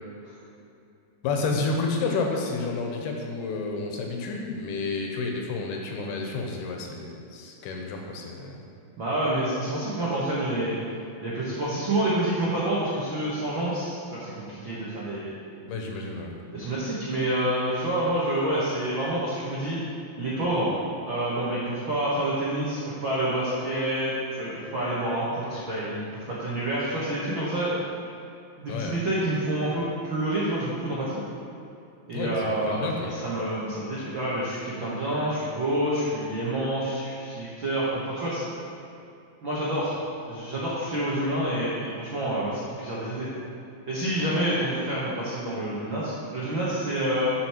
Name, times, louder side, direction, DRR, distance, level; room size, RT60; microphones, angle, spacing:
voice 1, 1.2-8.6 15.7-16.3 28.7-29.0 32.1-33.1, left 3 dB, 75° left, 1 dB, 2.9 m, -30 dB
voice 2, 9.0-10.8 11.2-15.3 16.5-19.8 20.2-20.7 21.1-27.8 28.6-31.2 32.1-32.8 33.1-38.5 39.4-40.0 40.3-43.4 43.9-47.3, right 1 dB, 90° right, -8 dB, 1.0 m, -28 dB
12.0 x 5.3 x 4.6 m, 2.6 s
omnidirectional pair, 4.7 m